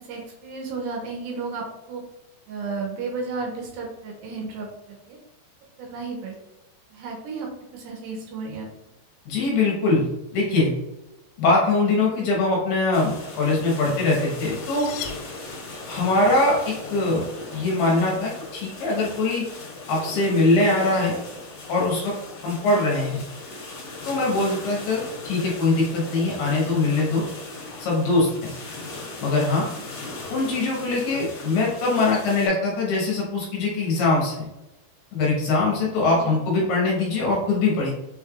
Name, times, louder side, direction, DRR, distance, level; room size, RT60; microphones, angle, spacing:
voice 1, 0.0-2.0 2.5-5.2 5.8-6.4 6.9-8.7 36.1-36.4, right 4 dB, 75° right, -1 dB, 2.8 m, -33 dB
voice 2, 9.3-10.1 10.3-10.7 11.4-14.9 15.9-17.2 17.5-19.4 19.9-21.2 21.7-22.1 22.4-23.2 24.1-27.2 27.8-28.5 29.2-29.7 30.3-34.5 35.1-37.9, left 2 dB, 70° left, -3 dB, 2.8 m, -22 dB
sound 1, 12.9-32.5, left 2 dB, 55° left, 2.3 m, -38 dB
sound 2, 14.4-16.0, left 9 dB, 85° left, 2.9 m, -39 dB
6.5 x 3.3 x 2.3 m, 0.97 s
omnidirectional pair, 5.3 m